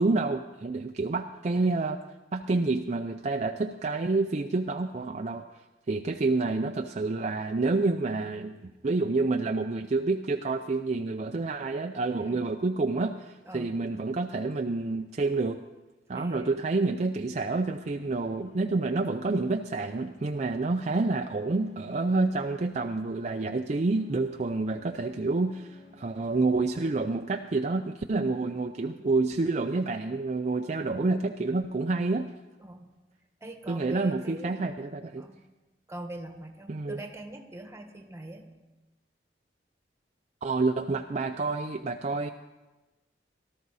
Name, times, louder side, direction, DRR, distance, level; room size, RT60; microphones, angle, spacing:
voice 1, 0.0-2.0 2.3-5.5 5.9-15.6 16.1-32.3 33.7-35.2 36.7-37.0 40.4-42.3, right 3 dB, 40° right, 5 dB, 0.5 m, -28 dB
voice 2, 12.2-12.5 13.4-13.8 16.1-16.6 32.6-32.9 33.4-34.6 35.1-35.5 35.9-38.5, right 1 dB, 15° right, 5 dB, 1.3 m, -43 dB
sound 1, 17.2-28.8, left 3 dB, 45° left, 2.5 m, -56 dB
18.5 x 12.5 x 4.1 m, 1.1 s
head